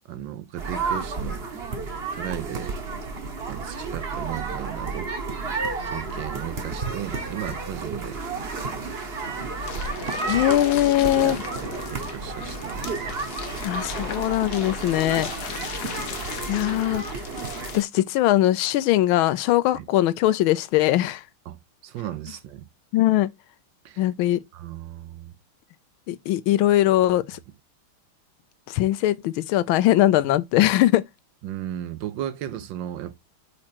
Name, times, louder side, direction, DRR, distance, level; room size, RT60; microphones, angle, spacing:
voice 1, 0.1-1.4 2.1-2.7 3.5-5.1 5.8-8.2 11.1-13.0 19.7-19.9 21.5-22.7 23.8-24.1 24.5-25.3 31.4-33.1, right 11 dB, 70° right, 1.3 m, -35 dB
sound 1, 0.6-17.8, right 4 dB, 40° right, 1.1 m, -32 dB
sound 2, 9.6-17.8, left 8 dB, 60° left, 1.0 m, -37 dB
voice 2, 10.2-11.4 13.6-15.3 16.5-17.0 17.7-21.2 22.9-23.3 24.0-24.4 26.1-27.4 28.7-31.0, left 14 dB, 80° left, 1.4 m, -21 dB
5.0 x 4.3 x 4.3 m
omnidirectional pair, 2.2 m